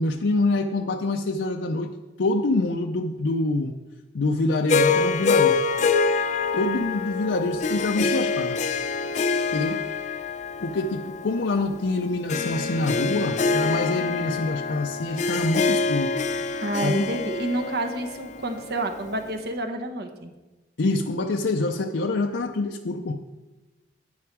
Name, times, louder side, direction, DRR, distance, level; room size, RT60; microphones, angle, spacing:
voice 1, 0.0-3.8 4.1-5.6 6.5-8.6 9.5-9.8 10.6-16.1 16.8-17.1 20.8-23.2, left 2 dB, 90° left, 3 dB, 0.6 m, -26 dB
Harp, 4.7-19.1, left 4 dB, 40° left, 0.5 m, -26 dB
voice 2, 16.6-20.3, right 2 dB, 60° right, 5 dB, 1.1 m, -29 dB
9.6 x 9.5 x 4.6 m, 1.1 s
head